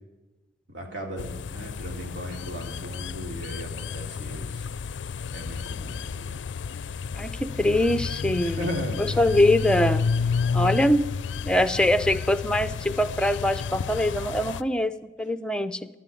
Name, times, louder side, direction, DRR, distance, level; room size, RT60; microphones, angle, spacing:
voice 1, 0.7-4.7 5.3-6.3 8.4-9.2, equal, 75° right, 0 dB, 2.8 m, -36 dB
sound 1, 1.2-14.6, left 5 dB, 85° left, 0.4 m, -31 dB
voice 2, 7.1-8.7 9.0-10.0 10.5-11.1 11.4-15.9, left 1 dB, 5° left, 11 dB, 0.5 m, -23 dB
14.0 x 11.0 x 8.5 m, 1.1 s
head